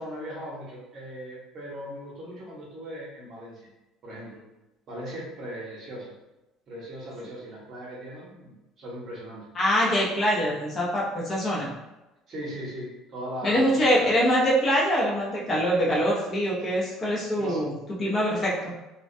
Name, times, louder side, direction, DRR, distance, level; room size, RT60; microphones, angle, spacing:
voice 1, 0.0-3.7 4.0-4.4 4.9-6.1 6.7-9.5 12.3-13.7 14.0-14.1 17.4-17.6, equal, 40° right, -4 dB, 0.8 m, -38 dB
voice 2, 9.5-11.7 13.4-18.5, equal, 30° left, -5 dB, 0.6 m, -24 dB
2.3 x 2.1 x 2.6 m, 0.99 s
cardioid pair, 145°, 0 cm